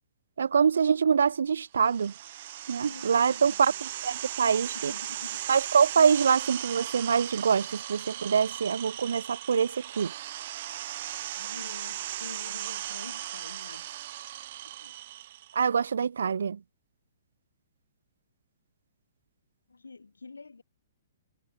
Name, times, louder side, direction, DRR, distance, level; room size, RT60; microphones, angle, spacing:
voice 1, 0.4-2.1 2.7-4.9 5.5-10.1 15.5-16.6, right 6 dB, 65° right, 0.5 m, -25 dB
sound 1, 1.8-15.6, right 13 dB, 45° right, 3.8 m, -37 dB
voice 2, 2.8-3.7 4.7-5.4 11.4-14.3 14.8-14.9 19.7-20.6, left 4 dB, 75° left, 5.3 m, -47 dB
figure-of-eight pair, 120°, 0 cm